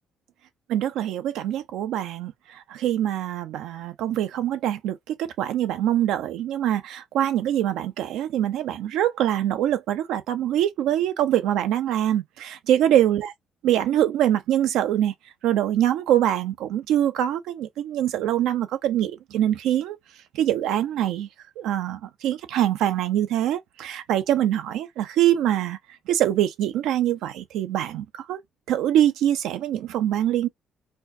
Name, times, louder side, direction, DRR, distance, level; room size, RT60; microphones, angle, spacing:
voice 1, 0.7-13.3 13.6-15.1 15.4-20.0 20.3-21.3 21.6-25.8 26.1-28.4 28.7-30.5, right 11 dB, 85° right, 0.6 m, -24 dB
4.3 x 2.3 x 2.6 m
cardioid pair, 90°, 0 cm